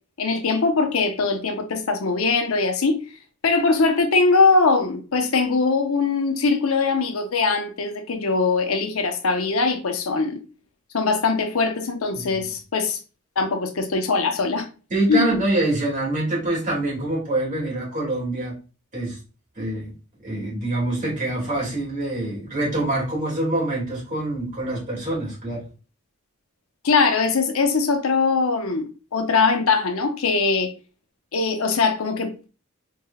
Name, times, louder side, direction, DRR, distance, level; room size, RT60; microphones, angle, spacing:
voice 1, 0.2-3.0 3.4-10.4 10.9-13.0 13.4-14.7 15.1-15.2 26.8-28.9 29.1-30.7 31.3-32.5, left 4 dB, 80° left, 0.8 m, -21 dB
voice 2, 14.9-18.6 18.9-19.2 19.6-19.9 20.2-25.6, right 2 dB, 35° right, 2.2 m, -25 dB
4.5 x 3.2 x 2.3 m
head